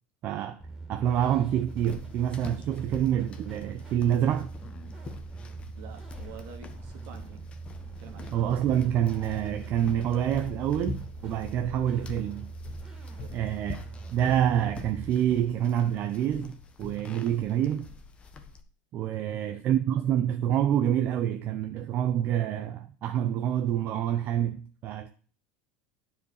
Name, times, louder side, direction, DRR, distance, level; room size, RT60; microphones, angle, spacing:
voice 1, 0.2-0.6 0.9-4.5 8.3-12.5 13.3-13.8 14.1-17.9 18.9-25.1, right 10 dB, 45° right, 0.7 m, -27 dB
sound 1, 0.6-15.1, right 4 dB, 10° right, 2.8 m, -42 dB
sound 2, 1.7-18.6, left 4 dB, 25° left, 1.2 m, -45 dB
voice 2, 5.8-7.4 8.0-8.4 13.1-13.4 19.0-19.4, right 7 dB, 65° right, 2.2 m, -47 dB
10.0 x 4.9 x 6.6 m
supercardioid pair, 125°, 4 cm